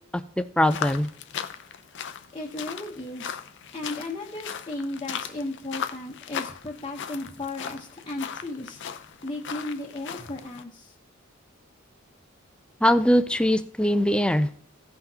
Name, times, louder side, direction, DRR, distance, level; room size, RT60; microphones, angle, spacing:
voice 1, 0.1-1.1 12.8-14.5, left 1 dB, 5° left, 12 dB, 0.4 m, -22 dB
sound 1, 0.6-10.6, left 8 dB, 60° left, 0.5 m, -37 dB
voice 2, 2.3-3.4 3.7-8.8 9.2-10.9, left 2 dB, 25° left, -4 dB, 1.0 m, -35 dB
16.0 x 5.8 x 2.8 m, 0.62 s
head